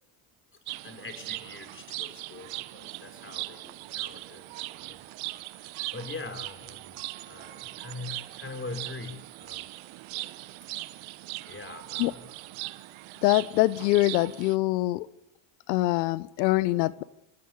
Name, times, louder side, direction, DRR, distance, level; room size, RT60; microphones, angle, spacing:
sound 1, 0.7-14.6, right 19 dB, 70° right, 1.3 m, -40 dB
voice 1, 0.8-5.0 5.6-9.7 11.4-12.3, left 3 dB, 25° left, 5.4 m, -43 dB
voice 2, 13.2-15.1 15.7-17.0, left 18 dB, 90° left, 1.0 m, -24 dB
30.0 x 17.0 x 9.7 m
supercardioid pair, 75°, 49 cm